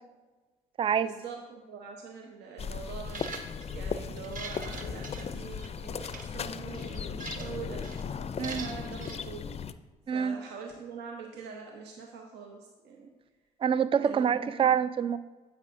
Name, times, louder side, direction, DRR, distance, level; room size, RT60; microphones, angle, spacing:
voice 1, 1.0-9.5 10.1-13.1 14.0-14.6, right 5 dB, 65° right, 1 dB, 0.9 m, -44 dB
sound 1, 2.6-9.7, left 6 dB, 35° left, 0.5 m, -37 dB
sound 2, 3.1-3.7 4.2-5.7 6.0-6.2 6.7-7.6 7.8-8.0 8.4-9.2, right 4 dB, 45° right, 1.3 m, -43 dB
voice 2, 10.1-10.4 13.6-15.2, right 8 dB, 30° right, 15 dB, 0.4 m, -26 dB
9.5 x 7.9 x 2.6 m, 1.2 s
hypercardioid pair, 45°, 19 cm